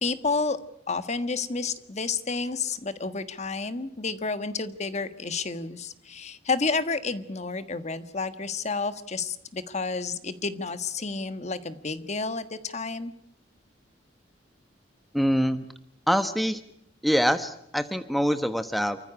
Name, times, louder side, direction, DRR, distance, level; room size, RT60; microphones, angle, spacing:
voice 1, 0.0-0.6 0.9-13.1, left 4 dB, 40° left, 12 dB, 1.4 m, -30 dB
voice 2, 15.1-15.6 16.1-16.6 17.0-19.0, equal, ahead, 10 dB, 1.1 m, -24 dB
29.0 x 15.0 x 9.9 m, 0.72 s
head